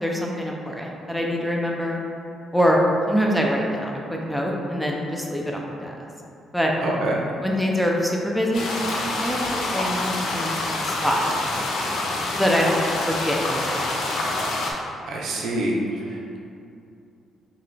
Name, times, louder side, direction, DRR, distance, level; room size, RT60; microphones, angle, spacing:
voice 1, 0.0-2.0 2.5-2.8 3.1-6.0 6.5-6.7 7.4-11.2 11.5-12.0 12.4-12.8 13.1-13.9, equal, 5° left, -1 dB, 0.4 m, -25 dB
voice 2, 6.8-7.1 15.1-15.7 16.1-16.4, right 2 dB, 70° right, -2 dB, 0.6 m, -26 dB
sound 1, 8.5-14.7, left 2 dB, 80° left, 0.5 m, -27 dB
3.8 x 2.3 x 3.3 m, 2.6 s
cardioid pair, 90°, 0 cm